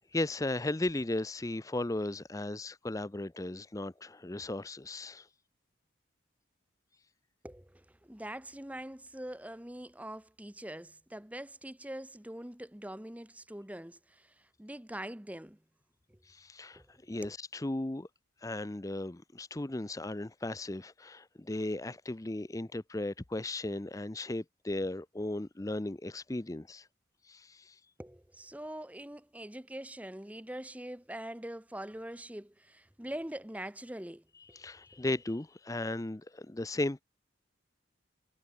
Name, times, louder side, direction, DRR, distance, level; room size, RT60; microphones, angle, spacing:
voice 1, 0.1-5.3 16.3-18.1 18.4-26.9 27.3-27.8 34.5-37.0, left 2 dB, 15° left, 0.5 m, -36 dB
voice 2, 7.4-15.6 16.1-16.2 16.7-16.8 17.2-17.4 28.0-34.6, right 1 dB, 5° right, 1.0 m, -43 dB
head